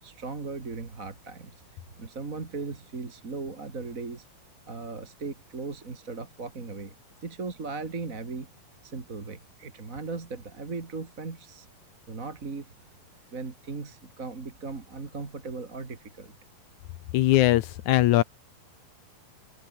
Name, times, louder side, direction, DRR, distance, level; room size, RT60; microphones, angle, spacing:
voice 1, 0.0-1.6 2.0-4.3 4.7-6.9 7.2-8.5 8.8-11.7 12.1-12.7 13.3-16.3, right 4 dB, 25° right, 2.3 m, -37 dB
voice 2, 17.1-18.2, left 15 dB, 80° left, 1.8 m, -20 dB
omnidirectional pair, 4.3 m